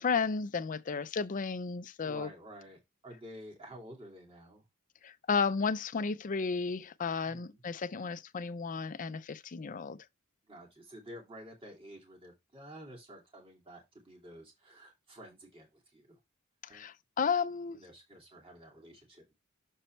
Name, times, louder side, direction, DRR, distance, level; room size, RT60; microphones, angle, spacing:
voice 1, 0.0-2.3 5.0-10.0 16.7-17.8, left 5 dB, 40° left, 0.5 m, -33 dB
voice 2, 2.0-4.6 7.2-7.6 10.5-16.2 16.7-16.9 17.7-19.4, equal, 25° right, 2.4 m, -51 dB
6.7 x 4.2 x 4.4 m
head